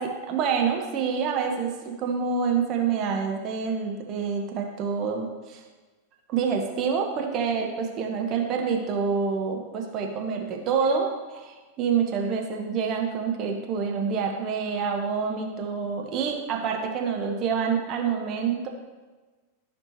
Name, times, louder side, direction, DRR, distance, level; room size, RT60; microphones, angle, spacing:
voice 1, 0.0-5.6 6.3-18.7, right 6 dB, 35° right, 2 dB, 1.4 m, -27 dB
13.5 x 6.0 x 3.1 m, 1.3 s
figure-of-eight pair, 90°, 0 cm